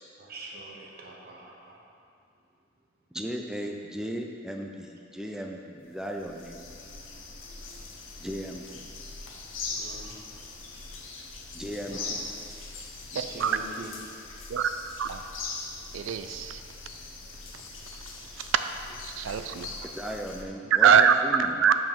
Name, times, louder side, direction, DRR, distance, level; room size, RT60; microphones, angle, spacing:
voice 1, 0.2-1.9 9.7-10.2 11.9-12.1 13.1-13.9, right 2 dB, 50° right, -2 dB, 1.0 m, -44 dB
voice 2, 3.1-6.7 8.2-8.9 11.5-12.3 20.0-21.6, equal, 5° right, 2 dB, 0.4 m, -36 dB
sound 1, 5.8-5.9 6.2-20.4, left 3 dB, 75° left, 0.8 m, -41 dB
voice 3, 13.2-13.6 14.5-14.7 15.0-15.2 15.9-16.6 19.2-19.7 20.8-21.2 21.6-21.7, right 8 dB, 70° right, 9 dB, 0.4 m, -22 dB
5.8 x 4.9 x 5.2 m, 2.4 s
head